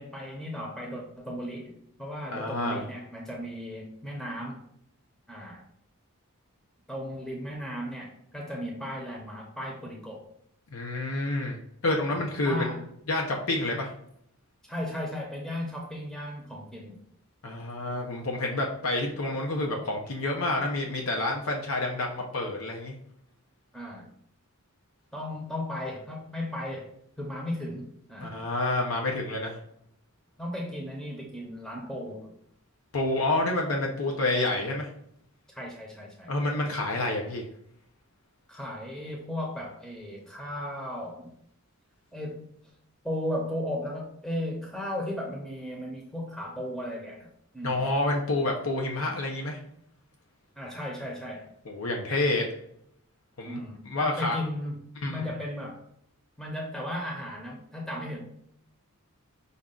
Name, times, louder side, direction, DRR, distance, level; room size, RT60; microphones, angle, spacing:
voice 1, 0.0-1.7 2.0-4.6 5.3-5.6 6.9-10.3 12.1-12.8 14.6-17.0 23.7-24.1 25.1-26.9 27.2-28.4 30.4-32.3 35.5-36.3 38.5-41.3 42.1-42.5 43.0-47.3 47.5-47.8 50.6-51.5 53.4-54.7 55.1-55.8 56.4-58.2, left 1 dB, 5° left, -2 dB, 0.7 m, -35 dB
voice 2, 2.3-2.8 10.7-12.8 13.1-13.9 17.4-22.9 28.2-29.6 32.9-34.9 36.3-37.5 47.6-49.6 51.7-52.5 53.4-54.4 55.0-55.3, left 2 dB, 75° left, 1 dB, 0.7 m, -28 dB
5.4 x 2.4 x 3.7 m, 0.70 s
head